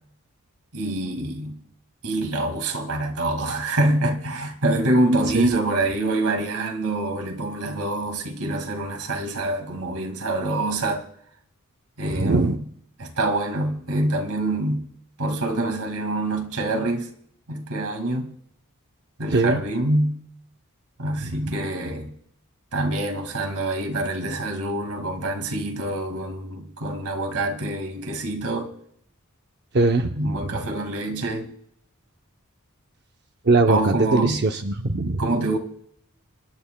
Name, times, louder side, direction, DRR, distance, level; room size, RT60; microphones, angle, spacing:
voice 1, 0.7-1.6 2.0-11.0 12.0-12.6 13.0-14.8 15.2-17.1 17.5-18.3 19.2-20.2 21.0-22.1 22.7-28.7 30.2-31.5 33.7-34.4 35.2-35.6, right 2 dB, 85° right, 2.0 m, -25 dB
voice 2, 12.1-12.6 19.3-19.6 21.2-21.5 29.7-30.6 33.4-35.2, right 3 dB, 50° right, 0.6 m, -21 dB
27.0 x 11.5 x 2.2 m
head